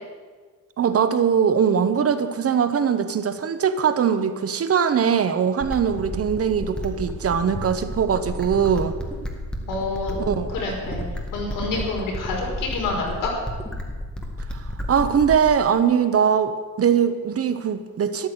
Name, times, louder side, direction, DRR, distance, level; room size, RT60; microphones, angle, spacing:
voice 1, 0.8-9.0 10.2-10.5 14.5-18.3, right 7 dB, 45° right, 10 dB, 1.0 m, -21 dB
sound 1, 5.6-15.6, equal, 5° left, 1.8 m, -32 dB
voice 2, 9.7-10.2 10.5-11.0 11.3-13.3, left 3 dB, 75° left, -1 dB, 5.1 m, -27 dB
13.0 x 11.5 x 8.2 m, 1.5 s
cardioid pair, 135°, 33 cm